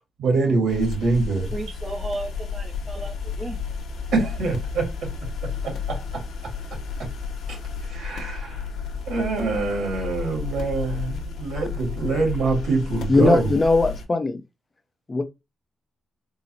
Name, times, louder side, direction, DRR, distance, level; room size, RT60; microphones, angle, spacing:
voice 1, 0.2-1.5 4.1-5.1 5.4-6.5 7.0-7.1 7.5-8.7 9.1-13.5, right 4 dB, 85° right, 2.0 m, -25 dB
sound 1, 0.7-14.0, left 5 dB, 85° left, 0.8 m, -32 dB
voice 2, 1.5-3.6, right 2 dB, 25° right, 0.5 m, -34 dB
voice 3, 13.1-14.4 15.1-15.2, left 3 dB, 25° left, 0.6 m, -19 dB
3.8 x 2.0 x 4.1 m
cardioid pair, 110°, 0 cm